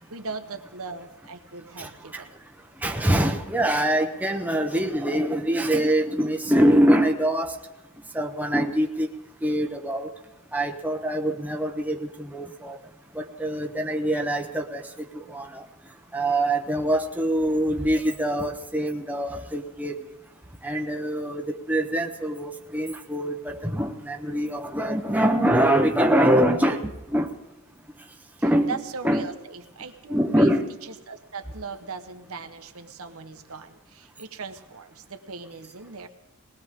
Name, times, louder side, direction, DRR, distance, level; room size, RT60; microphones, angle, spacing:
voice 1, 0.1-2.3 28.6-30.5 31.1-36.1, right 4 dB, 70° right, 7 dB, 1.2 m, -39 dB
voice 2, 1.8-2.2 2.8-7.5 8.1-9.1 9.4-10.1 10.5-12.8 13.2-14.8 15.3-15.6 16.1-19.9 20.6-21.4 21.7-27.3 28.4-28.7 29.0-29.3 30.1-30.7, right 1 dB, 5° right, 3 dB, 0.9 m, -24 dB
21.0 x 18.5 x 3.7 m, 1.0 s
head